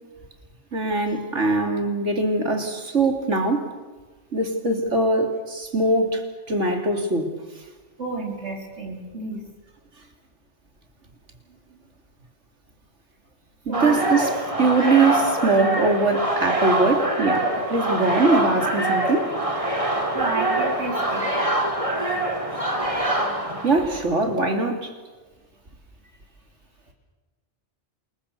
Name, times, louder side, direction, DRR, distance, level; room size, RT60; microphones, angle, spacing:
voice 1, 0.7-3.7 4.3-7.3 13.7-14.3 14.6-19.3 23.6-24.9, right 3 dB, 90° right, 5 dB, 3.4 m, -22 dB
voice 2, 8.0-9.4 13.7-14.3 14.6-14.7 20.1-21.3, right 3 dB, 70° right, 1 dB, 4.5 m, -31 dB
sound 1, 13.7-24.2, right 1 dB, 30° right, 3.2 m, -24 dB
27.5 x 22.5 x 6.8 m, 1.3 s
omnidirectional pair, 1.2 m